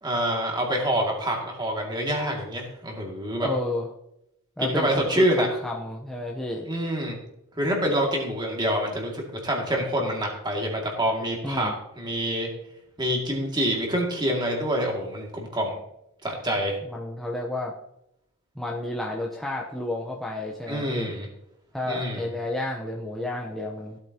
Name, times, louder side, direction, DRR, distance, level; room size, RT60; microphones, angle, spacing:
voice 1, 0.0-3.5 4.6-5.5 6.6-7.2 7.6-11.7 12.0-12.5 13.0-15.7 16.2-16.8 20.7-21.3 21.9-22.3, equal, 20° right, 0 dB, 2.3 m, -26 dB
voice 2, 3.4-3.9 4.6-6.7 11.4-11.7 16.9-17.7 18.6-21.1 21.7-24.0, left 1 dB, ahead, -3 dB, 0.8 m, -31 dB
16.0 x 8.5 x 2.9 m, 0.81 s
head